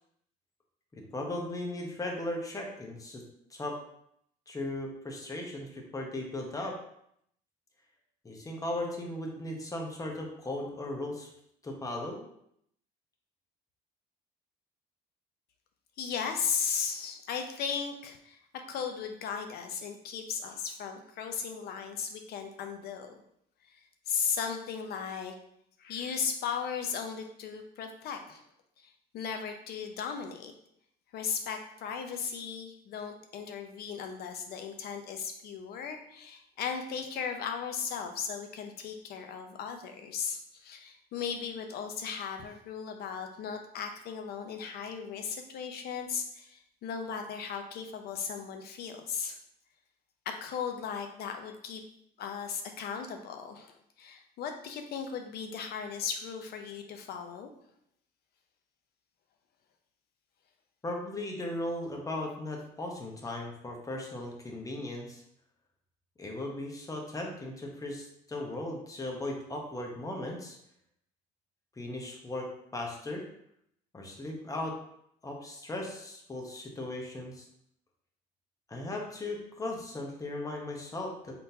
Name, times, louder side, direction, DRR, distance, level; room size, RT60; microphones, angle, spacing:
voice 1, 0.9-3.2 3.5-3.8 4.5-6.8 8.2-11.3 11.6-12.2 60.8-65.2 66.2-70.6 71.8-73.3 73.9-74.8 75.2-77.4 78.7-81.4, left 1 dB, 20° left, 1 dB, 0.9 m, -37 dB
voice 2, 16.0-23.1 23.6-23.8 24.1-25.3 25.8-28.4 28.8-30.5 31.1-49.4 50.3-51.8 52.2-57.5, left 6 dB, 70° left, 5 dB, 0.7 m, -36 dB
4.0 x 3.7 x 2.8 m, 0.72 s
cardioid pair, 110°, 17 cm